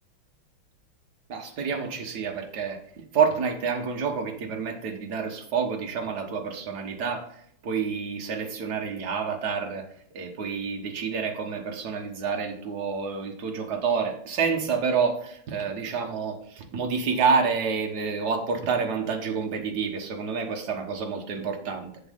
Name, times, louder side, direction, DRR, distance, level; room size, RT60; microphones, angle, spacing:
voice 1, 1.3-2.8 3.1-7.3 7.6-9.8 10.1-21.9, right 5 dB, 55° right, 3 dB, 1.7 m, -28 dB
7.8 x 7.4 x 3.6 m, 0.67 s
omnidirectional pair, 2.2 m